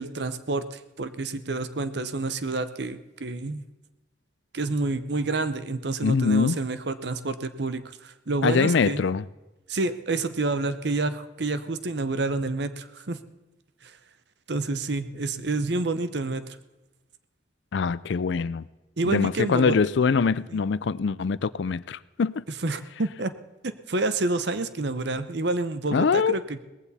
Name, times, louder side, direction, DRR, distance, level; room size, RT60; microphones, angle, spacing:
voice 1, 0.0-3.6 4.5-9.0 9.7-13.2 13.8-14.0 14.5-16.5 19.0-19.8 20.5-20.6 22.6-23.3 23.6-26.6, right 3 dB, 55° right, 0.8 m, -28 dB
voice 2, 6.0-6.6 8.4-9.2 17.7-18.7 19.0-22.4 25.9-26.4, left 5 dB, 65° left, 0.4 m, -23 dB
19.0 x 15.0 x 4.2 m
head